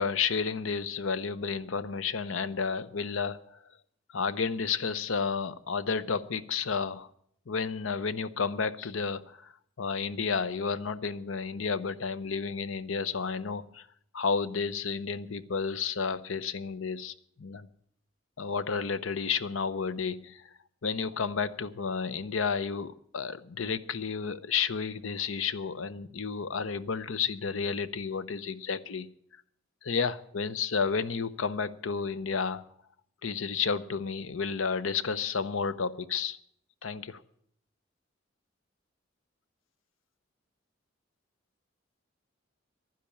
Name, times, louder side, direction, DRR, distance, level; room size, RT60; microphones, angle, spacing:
voice 1, 0.0-3.6 4.1-7.1 7.5-9.5 9.8-13.9 14.1-17.7 18.4-20.4 20.8-29.1 29.8-32.6 33.2-36.4 36.8-37.2, left 5 dB, 90° left, 15 dB, 0.7 m, -31 dB
11.0 x 10.5 x 8.6 m, 0.68 s
head